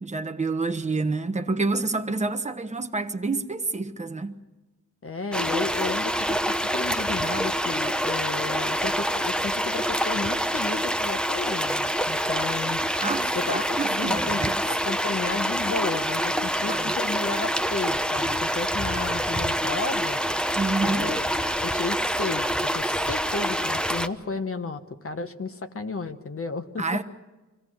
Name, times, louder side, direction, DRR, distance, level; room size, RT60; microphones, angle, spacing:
voice 1, 0.0-4.4 13.0-14.6 16.6-16.9 20.6-21.1 26.8-27.0, right 3 dB, 20° right, 1.1 m, -28 dB
voice 2, 5.0-12.8 13.3-14.4 14.7-20.2 20.8-21.3 21.6-27.0, left 4 dB, 45° left, 1.3 m, -33 dB
sound 1, 5.3-24.1, equal, 5° left, 0.8 m, -26 dB
25.0 x 16.5 x 6.3 m
wide cardioid pair, 120°, 31 cm